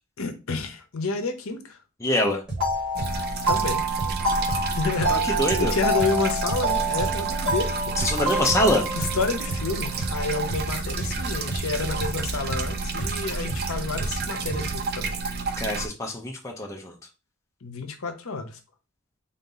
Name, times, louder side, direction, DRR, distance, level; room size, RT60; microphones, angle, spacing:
voice 1, 0.2-1.8 3.5-3.8 4.6-5.1 5.6-7.9 9.1-15.2 17.6-18.6, left 3 dB, 70° left, 0.7 m, -29 dB
voice 2, 2.0-2.4 5.1-5.7 8.0-8.9 15.6-16.9, left 1 dB, 15° left, 0.5 m, -24 dB
sound 1, 2.5-14.7, right 2 dB, 5° right, 1.5 m, -34 dB
sound 2, 2.6-10.0, right 1 dB, 65° right, 2.2 m, -28 dB
sound 3, 2.9-15.9, right 4 dB, 45° right, 0.4 m, -31 dB
3.8 x 2.7 x 3.8 m
head